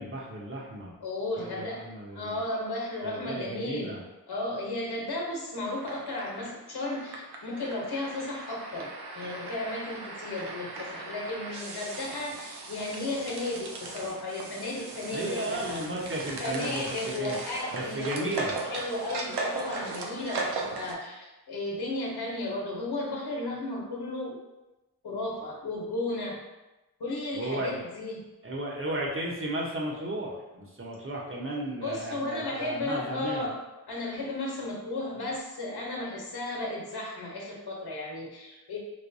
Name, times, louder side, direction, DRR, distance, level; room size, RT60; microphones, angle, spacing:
voice 1, 0.0-0.9 1.3-2.4 3.0-4.0 15.1-17.4 17.7-18.5 27.3-27.8 28.4-33.5, right 1 dB, 35° right, -3 dB, 1.0 m, -34 dB
voice 2, 1.0-1.8 2.1-4.0 4.3-15.8 16.4-24.4 25.0-26.4 27.0-28.2 31.8-33.6 33.9-38.8, left 2 dB, 80° left, -1 dB, 0.9 m, -34 dB
sound 1, 5.6-20.9, right 3 dB, 90° right, 0.6 m, -38 dB
4.8 x 2.2 x 2.7 m, 1.0 s
cardioid pair, 50°, 38 cm